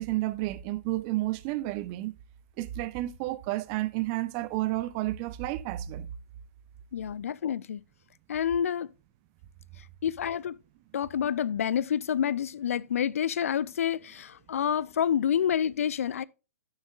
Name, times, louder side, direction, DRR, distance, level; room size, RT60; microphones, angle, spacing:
voice 1, 0.0-2.1 2.6-6.1, right 17 dB, 35° right, 0.6 m, -31 dB
voice 2, 6.9-7.8 8.3-8.9 10.0-10.6 10.9-16.2, left 9 dB, 65° left, 0.4 m, -28 dB
11.5 x 7.2 x 2.4 m
figure-of-eight pair, 120°, 8 cm